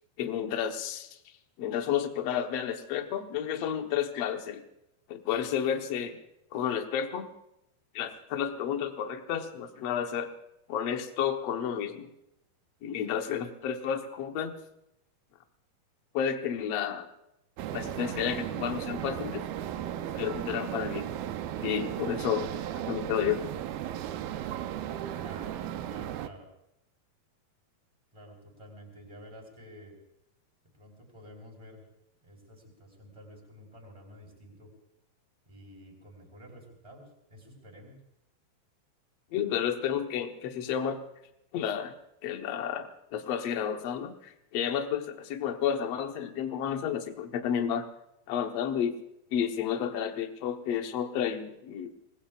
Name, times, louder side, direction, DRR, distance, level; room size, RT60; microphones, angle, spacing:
voice 1, 0.2-1.2 1.6-4.6 5.1-6.2 6.5-7.3 7.9-10.3 10.7-12.1 12.8-14.6 16.1-17.1 17.7-19.4 20.1-21.1 21.6-22.5 22.7-23.4 39.3-41.0 41.5-41.9 42.2-47.9 48.3-48.9 49.3-51.9, left 8 dB, 65° left, 5 dB, 1.6 m, -31 dB
sound 1, 17.6-26.3, right 11 dB, 75° right, 2.4 m, -35 dB
voice 2, 25.2-25.6 25.8-26.5 28.1-29.9 30.7-31.8 32.2-34.7 35.5-38.0, equal, 10° right, 1 dB, 4.2 m, -50 dB
27.0 x 20.0 x 2.5 m, 0.83 s
omnidirectional pair, 4.4 m